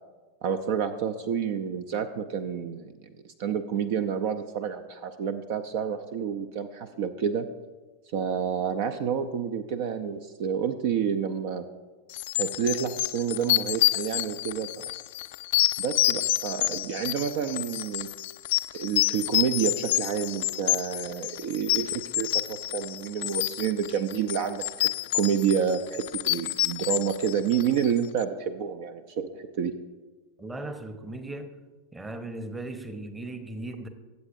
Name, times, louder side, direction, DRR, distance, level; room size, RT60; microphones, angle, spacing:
voice 1, 0.4-7.5 8.1-11.7 12.4-14.9 15.8-18.1 18.7-29.8, right 7 dB, 50° right, 10 dB, 0.6 m, -29 dB
sound 1, 12.1-28.0, left 17 dB, 50° left, 0.3 m, -28 dB
voice 2, 30.4-31.5 31.9-33.9, right 2 dB, 10° right, 9 dB, 1.0 m, -37 dB
21.0 x 8.0 x 2.6 m, 1.3 s
figure-of-eight pair, 90°, 0 cm